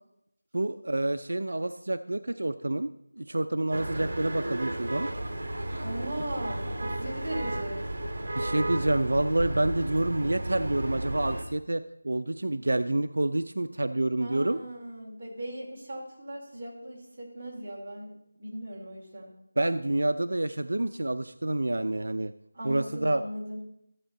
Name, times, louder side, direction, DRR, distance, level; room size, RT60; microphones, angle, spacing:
voice 1, 0.5-2.9 3.2-5.1 8.4-14.6 19.6-22.3 22.6-23.2, right 1 dB, 75° right, 11 dB, 0.5 m, -28 dB
sound 1, 3.7-11.4, right 1 dB, 45° right, 2.7 m, -33 dB
voice 2, 5.8-7.8 14.2-18.1 18.4-19.3 22.5-23.6, right 1 dB, 20° right, -6 dB, 3.0 m, -38 dB
14.0 x 8.2 x 4.1 m, 0.78 s
figure-of-eight pair, 175°, 0 cm